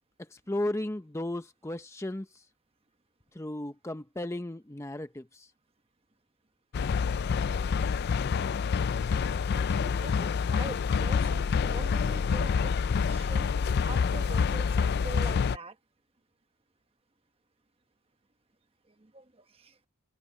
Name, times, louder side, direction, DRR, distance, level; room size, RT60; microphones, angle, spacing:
voice 1, 0.3-2.4 3.3-5.5, left 1 dB, 15° left, 0.6 m, -35 dB
sound 1, 6.7-15.6, left 6 dB, 50° left, 0.3 m, -27 dB
voice 2, 9.5-13.5 13.8-15.8 18.9-19.8, right 2 dB, 25° right, 1.1 m, -44 dB
head